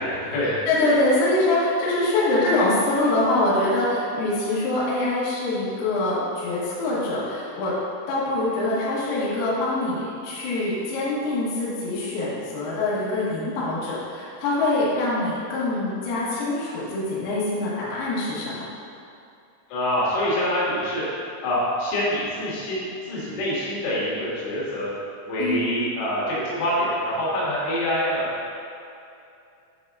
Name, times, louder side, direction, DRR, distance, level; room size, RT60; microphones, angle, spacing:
voice 1, 0.0-0.6 19.7-21.0 21.4-24.9 25.2-28.3, left 1 dB, 85° left, -8 dB, 4.5 m, -25 dB
voice 2, 0.7-7.7 8.1-18.6 25.4-25.6, left 2 dB, 65° left, -8 dB, 3.0 m, -24 dB
9.9 x 4.0 x 3.6 m, 2.6 s
omnidirectional pair, 6.0 m